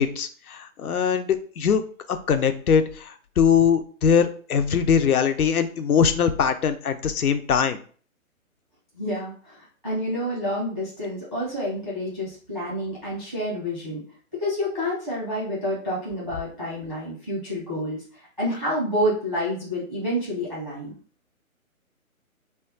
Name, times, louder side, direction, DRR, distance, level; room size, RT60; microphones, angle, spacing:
voice 1, 0.0-1.8 2.1-7.8, left 7 dB, 90° left, 9 dB, 0.6 m, -22 dB
voice 2, 8.9-14.0 14.3-20.9, equal, ahead, -11 dB, 0.5 m, -29 dB
2.3 x 2.0 x 3.8 m, 0.43 s
figure-of-eight pair, 145°, 42 cm